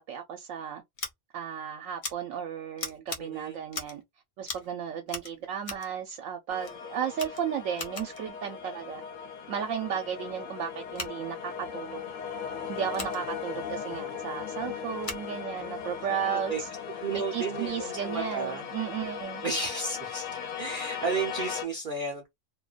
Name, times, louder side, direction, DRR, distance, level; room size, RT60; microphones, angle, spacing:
voice 1, 0.1-0.8 1.3-4.0 4.4-9.0 9.5-12.0 12.7-16.7 17.1-19.4, right 8 dB, 80° right, 0.9 m, -34 dB
Scissors, 1.0-1.1 2.0-2.1 2.8-3.2 3.7-4.0 4.4-4.7 5.1-5.9 6.6-6.8 7.1-8.2 10.9-11.1 12.9-13.2 15.0-15.3, left 3 dB, 40° left, 0.5 m, -38 dB
voice 2, 3.2-3.6 16.2-16.6 17.0-18.7 19.4-20.3 20.6-22.3, right 4 dB, 55° right, 0.6 m, -33 dB
sound 1, 6.5-21.6, left 7 dB, 80° left, 1.0 m, -38 dB
2.5 x 2.2 x 2.2 m
omnidirectional pair, 1.3 m